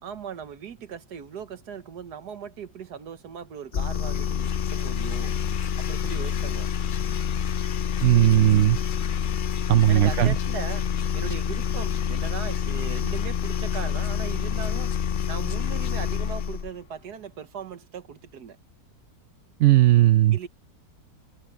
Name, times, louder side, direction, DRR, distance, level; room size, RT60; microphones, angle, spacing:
voice 1, 0.0-5.4 5.8-6.7 9.9-10.9 11.1-15.0 15.3-18.6 20.3-20.5, right 7 dB, 90° right, 1.8 m, -38 dB
sound 1, 3.7-16.7, left 7 dB, 60° left, 0.5 m, -27 dB
voice 2, 8.0-8.8 9.7-10.3 19.6-20.4, right 14 dB, 65° right, 0.8 m, -17 dB
omnidirectional pair, 1.7 m